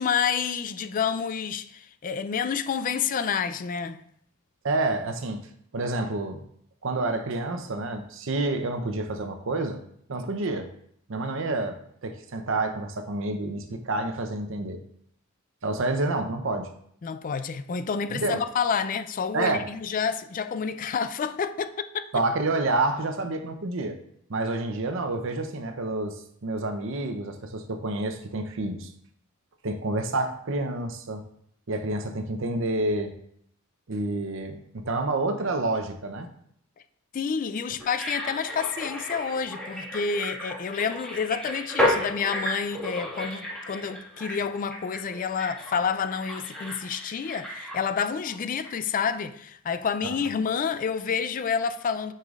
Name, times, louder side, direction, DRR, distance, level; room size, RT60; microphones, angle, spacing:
voice 1, 0.0-4.0 17.0-22.1 37.1-52.1, left 6 dB, 40° left, 0.4 m, -29 dB
voice 2, 4.6-5.5 5.7-6.4 6.8-9.8 10.1-10.7 11.1-11.8 12.0-14.8 15.6-16.7 18.1-18.4 19.3-19.6 22.1-24.0 24.3-28.9 29.6-31.2 31.7-33.1 33.9-36.3, right 2 dB, 70° right, 0.7 m, -28 dB
sound 1, 37.8-48.3 48.6-48.7, left 1 dB, 5° left, 1.8 m, -33 dB
9.4 x 5.6 x 2.4 m
head